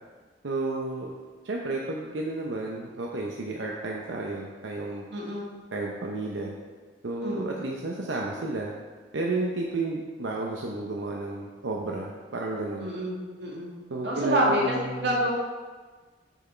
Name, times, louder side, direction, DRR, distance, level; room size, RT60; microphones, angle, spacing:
voice 1, 0.4-1.1 1.4-5.0 5.7-6.6 7.0-8.7 9.1-12.9 13.9-15.1, right 2 dB, 90° right, -2 dB, 0.7 m, -32 dB
voice 2, 5.1-5.4 7.2-7.5 12.8-13.7 14.0-15.3, equal, 65° right, -3 dB, 1.8 m, -27 dB
7.0 x 6.1 x 4.4 m, 1.4 s
head